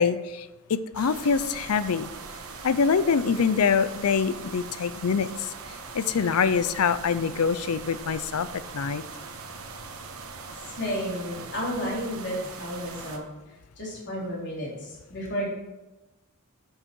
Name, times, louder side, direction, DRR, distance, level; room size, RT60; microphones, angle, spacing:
voice 1, 0.0-2.1 2.6-5.5 5.9-8.5 8.7-9.0, left 6 dB, 75° left, 14 dB, 0.5 m, -24 dB
sound 1, 0.9-13.2, right 4 dB, 70° right, 1.2 m, -41 dB
voice 2, 10.5-13.2 13.5-15.5, equal, 55° left, -5 dB, 3.4 m, -32 dB
10.5 x 6.5 x 4.5 m, 1.1 s
head